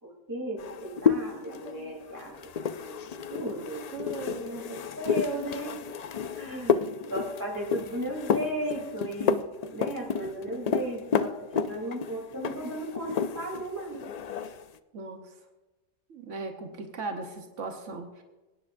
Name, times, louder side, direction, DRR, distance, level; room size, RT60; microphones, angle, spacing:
voice 1, 0.0-3.9 4.4-5.9 6.3-14.0, right 1 dB, 15° right, -2 dB, 3.2 m, -36 dB
sound 1, 0.6-13.7 13.9-14.6, left 6 dB, 75° left, 0.3 m, -31 dB
voice 2, 3.9-4.7 14.9-15.3 16.1-18.2, right 3 dB, 85° right, 5 dB, 1.3 m, -38 dB
24.0 x 9.7 x 2.6 m, 1.1 s
omnidirectional pair, 1.2 m